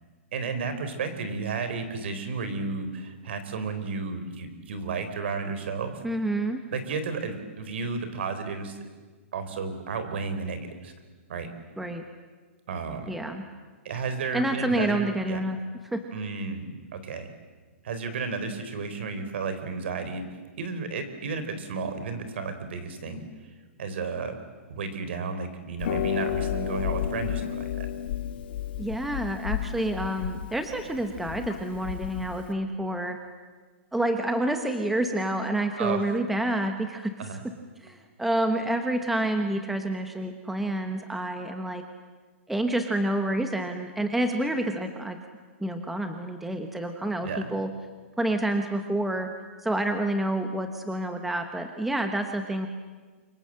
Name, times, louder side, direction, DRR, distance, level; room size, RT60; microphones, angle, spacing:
voice 1, 0.3-6.0 6.7-8.8 9.3-10.9 11.3-11.5 12.7-13.1 13.8-15.4 16.1-17.3 17.8-20.2 20.6-23.2 23.8-24.4 24.7-27.9 35.8-36.1 37.2-37.4 47.2-47.5, right 4 dB, 55° right, 9 dB, 4.3 m, -32 dB
voice 2, 6.0-6.6 11.8-12.0 13.1-13.4 14.3-15.6 15.9-16.0 28.8-33.2 33.9-37.4 37.8-41.8 42.5-45.2 45.6-47.7 48.2-49.3 49.6-52.7, right 1 dB, ahead, 6 dB, 1.0 m, -28 dB
Harp, 25.8-32.5, left 11 dB, 45° left, 1.6 m, -32 dB
28.5 x 24.5 x 7.6 m, 1.4 s
hypercardioid pair, 170°, 7 cm